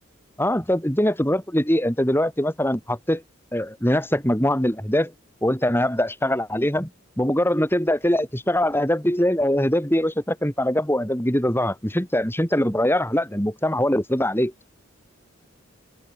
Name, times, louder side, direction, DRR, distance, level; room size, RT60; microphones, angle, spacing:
voice 1, 0.4-3.2 3.5-5.1 5.4-6.9 7.2-14.5, left 1 dB, 10° left, 7.1 m, -22 dB
head